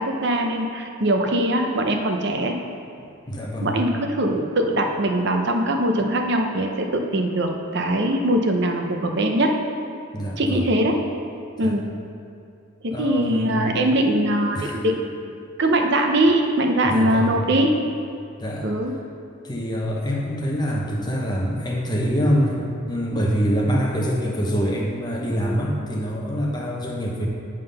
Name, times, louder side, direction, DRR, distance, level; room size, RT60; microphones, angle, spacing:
voice 1, 0.0-2.5 3.6-9.5 10.4-11.0 11.6-11.8 12.8-17.7 18.6-18.9, right 1 dB, 55° right, 3 dB, 0.7 m, -22 dB
voice 2, 3.3-3.8 10.1-10.7 11.6-11.8 12.9-13.6 14.5-14.8 16.8-17.4 18.4-18.7 19.4-27.3, equal, 20° left, -2 dB, 0.9 m, -25 dB
9.6 x 3.8 x 5.4 m, 2.5 s
head